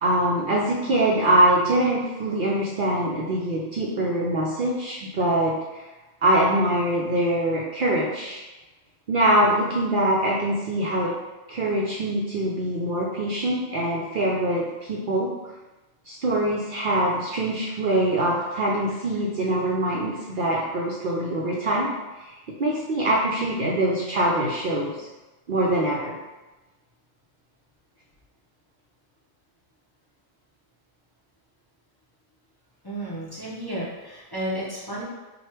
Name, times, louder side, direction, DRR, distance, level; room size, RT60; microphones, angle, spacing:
voice 1, 0.0-5.9 6.2-8.4 9.1-11.2 11.5-15.3 16.1-22.3 22.6-25.0 25.5-26.2, right 1 dB, 60° right, -4 dB, 0.6 m, -23 dB
voice 2, 32.8-35.0, right 1 dB, 25° left, -8 dB, 0.7 m, -32 dB
3.2 x 2.3 x 4.3 m, 1.1 s
omnidirectional pair, 1.2 m